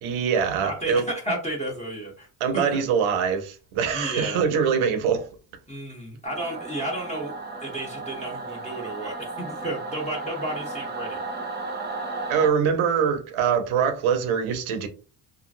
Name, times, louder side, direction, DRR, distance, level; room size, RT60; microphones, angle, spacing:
voice 1, 0.0-1.1 2.4-5.3 12.3-14.9, right 7 dB, 90° right, 0.7 m, -23 dB
voice 2, 0.6-2.3 2.5-2.6 3.9-4.4 5.7-7.3 7.6-11.2, right 1 dB, 15° left, 1.0 m, -32 dB
Singing / Musical instrument, 6.2-12.5, right 3 dB, 20° right, 0.7 m, -34 dB
2.8 x 2.5 x 2.5 m
cardioid pair, 85°, 48 cm